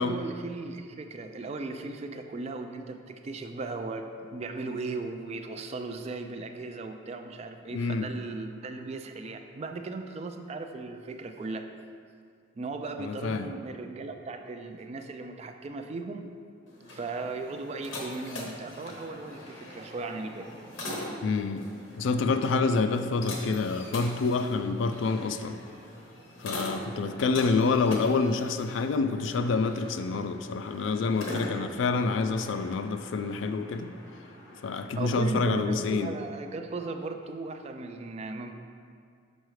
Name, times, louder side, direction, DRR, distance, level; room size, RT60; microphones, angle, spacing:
voice 1, 0.0-11.7 12.6-16.3 16.9-20.5 35.0-38.5, right 3 dB, 35° right, 6 dB, 0.3 m, -37 dB
voice 2, 7.7-8.1 13.0-13.5 21.2-21.7 22.0-25.6 26.4-33.9 34.6-36.1, left 4 dB, 70° left, 9 dB, 0.3 m, -27 dB
sound 1, 16.7-35.2, left 1 dB, 85° left, 1.0 m, -42 dB
6.2 x 5.5 x 3.1 m, 2.2 s
head